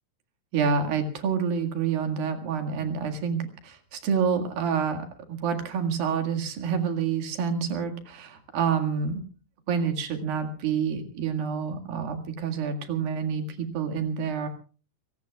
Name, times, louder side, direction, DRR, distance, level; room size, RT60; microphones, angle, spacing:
voice 1, 0.5-9.2 9.7-14.5, right 6 dB, 90° right, 5 dB, 3.7 m, -28 dB
29.5 x 17.5 x 2.3 m, 0.37 s
omnidirectional pair, 4.0 m